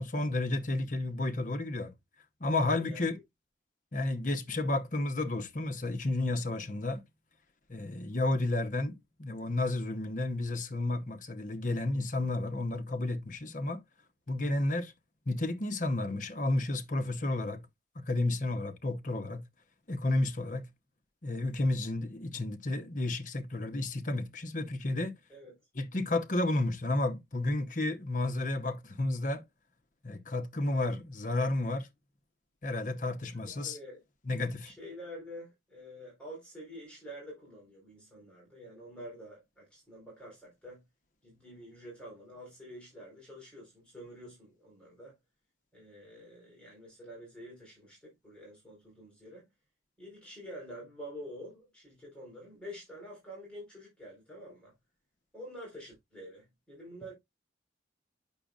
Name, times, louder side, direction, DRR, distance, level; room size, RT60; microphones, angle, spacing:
voice 1, 0.0-1.9 2.4-3.2 3.9-7.0 7.7-13.8 14.3-14.9 15.3-17.6 18.0-19.4 19.9-20.6 21.2-25.1 25.8-29.4 30.0-31.9 32.6-33.8 34.3-34.7, left 2 dB, 45° left, 0.9 m, -31 dB
voice 2, 2.7-3.1 25.3-25.5 33.2-34.0 34.6-40.8 41.2-45.2 45.7-49.5 50.0-54.7 55.3-57.1, equal, 5° left, 4.3 m, -48 dB
8.6 x 6.2 x 2.4 m
head